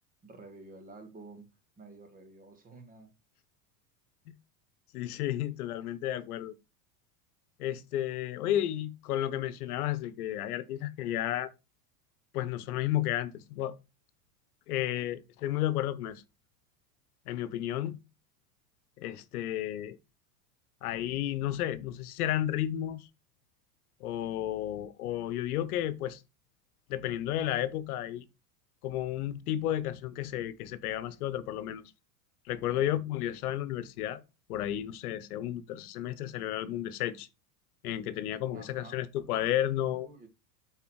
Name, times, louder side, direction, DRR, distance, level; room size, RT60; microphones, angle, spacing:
voice 1, 0.2-1.5 1.8-3.1 32.7-32.9 38.5-39.0 39.9-40.3, right 3 dB, 20° right, 1.7 m, -50 dB
voice 2, 4.9-6.5 7.6-11.5 12.3-13.8 14.7-16.2 17.3-18.0 19.0-20.0 20.8-23.1 24.0-26.2 26.9-28.3 28.8-31.9 32.5-34.2 34.5-37.3 37.8-40.1, left 12 dB, 80° left, 1.0 m, -32 dB
8.4 x 4.2 x 4.6 m
supercardioid pair, 145°, 44 cm